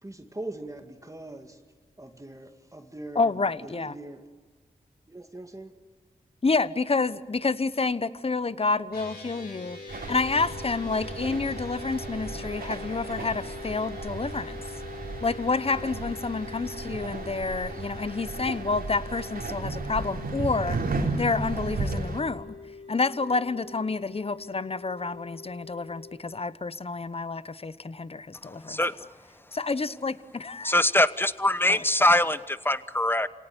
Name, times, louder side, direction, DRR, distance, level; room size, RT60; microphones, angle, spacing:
voice 1, 0.0-1.6 2.0-4.2 5.1-5.7 10.0-10.2, right 2 dB, 20° right, 6 dB, 2.2 m, -41 dB
voice 2, 3.1-3.9 6.4-9.8 10.1-14.6 15.2-20.8 21.1-22.5 22.9-28.8 29.5-30.7 31.7-31.8, left 3 dB, 40° left, 16 dB, 1.0 m, -29 dB
sound 1, 8.9-26.2, left 4 dB, 85° left, 4.6 m, -43 dB
sound 2, 9.9-22.2, right 3 dB, 75° right, 3.4 m, -34 dB
voice 3, 28.4-29.0 30.6-33.3, left 1 dB, 15° left, 15 dB, 1.1 m, -23 dB
27.5 x 18.0 x 9.6 m, 1.4 s
cardioid pair, 45°, 16 cm